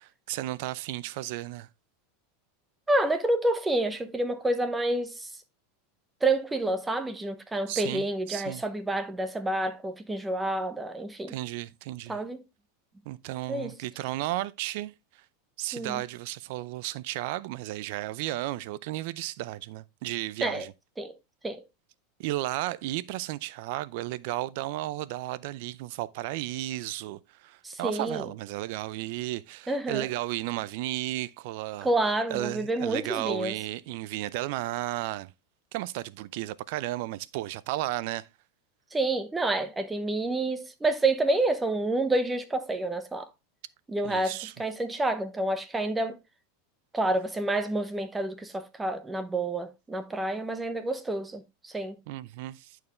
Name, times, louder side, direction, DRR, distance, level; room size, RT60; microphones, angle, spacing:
voice 1, 0.0-1.7 7.7-8.6 11.3-12.2 13.1-15.2 15.6-20.7 22.2-31.9 32.3-35.3 35.7-38.3 44.0-44.5 52.1-52.8, right 16 dB, 65° right, 0.5 m, -34 dB
voice 2, 2.9-5.3 6.2-11.3 12.1-12.4 13.5-13.7 15.7-16.0 20.4-20.6 21.0-21.1 21.4-21.6 27.6-28.2 29.7-30.1 31.8-33.5 38.9-43.3 43.9-46.2 46.9-51.9, right 2 dB, 10° right, 1.0 m, -28 dB
10.5 x 4.6 x 3.2 m
supercardioid pair, 125°, 0 cm